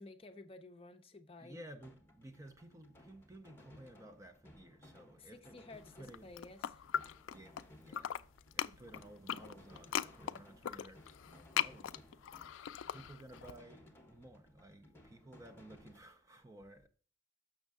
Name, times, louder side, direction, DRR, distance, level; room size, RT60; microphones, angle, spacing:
voice 1, 0.0-1.7 5.2-6.8, left 2 dB, 30° left, 0.6 m, -54 dB
voice 2, 1.4-5.6 6.0-6.3 7.3-8.2 8.5-12.0 12.9-16.9, right 1 dB, 15° right, 0.5 m, -55 dB
sound 1, 1.8-16.0, left 1 dB, 10° left, 1.1 m, -61 dB
sound 2, 6.0-7.6 7.9-13.5, left 10 dB, 85° left, 0.3 m, -39 dB
6.5 x 6.3 x 3.6 m
head